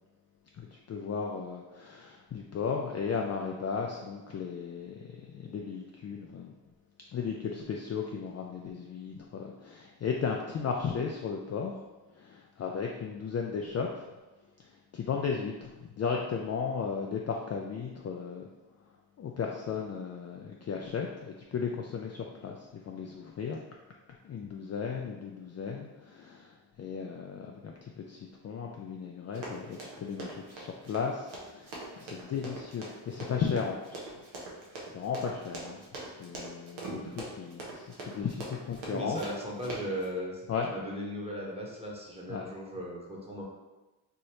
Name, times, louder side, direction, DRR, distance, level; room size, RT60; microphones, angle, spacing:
voice 1, 0.6-6.5 7.1-11.7 12.2-14.0 14.9-18.5 19.2-23.6 24.2-34.1 34.9-35.8 36.2-39.2 40.5-40.7 42.3-42.5, left 6 dB, 35° left, 0 dB, 0.4 m, -35 dB
Run, 29.3-40.0, right 2 dB, 75° right, 0.9 m, -42 dB
voice 2, 38.9-43.4, equal, 10° right, -3 dB, 1.1 m, -37 dB
3.2 x 2.6 x 2.9 m, 1.1 s
supercardioid pair, 40°, 49 cm